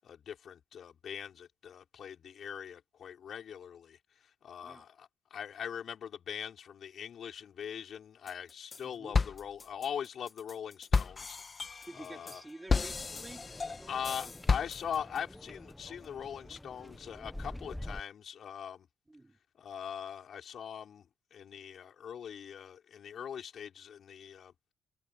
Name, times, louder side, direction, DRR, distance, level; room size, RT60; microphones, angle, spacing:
voice 1, 0.0-11.4 11.9-12.4 13.9-18.9 19.6-24.5, left 8 dB, 60° left, 6.0 m, -42 dB
sound 1, 8.3-8.8 9.1-15.2, left 4 dB, 35° left, 1.6 m, -33 dB
voice 2, 8.8-9.2 11.9-14.0 14.2-14.3 19.1-19.4, right 2 dB, 15° right, 4.6 m, -50 dB
sound 2, 12.7-18.0, left 1 dB, 5° left, 1.4 m, -47 dB
cardioid pair, 90°, 0 cm